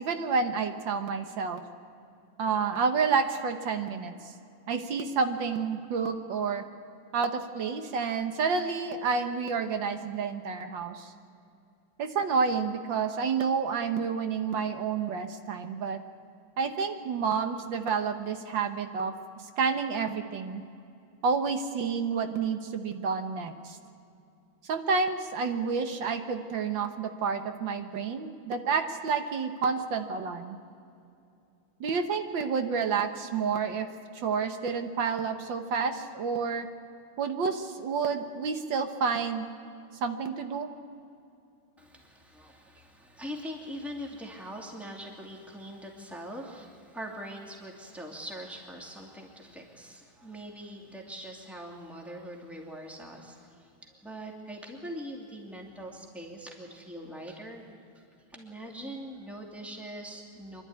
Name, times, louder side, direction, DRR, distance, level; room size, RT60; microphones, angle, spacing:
voice 1, 0.0-1.6 2.4-4.3 4.7-6.6 7.1-11.1 12.0-16.0 16.6-20.6 21.2-23.8 24.6-30.6 31.8-33.9 34.1-36.7 37.2-39.5 40.0-40.7, right 5 dB, 70° right, 7 dB, 1.8 m, -29 dB
voice 2, 41.8-57.6 57.9-58.0 58.3-60.6, equal, ahead, -1 dB, 2.6 m, -42 dB
26.5 x 12.0 x 9.6 m, 2.6 s
omnidirectional pair, 2.2 m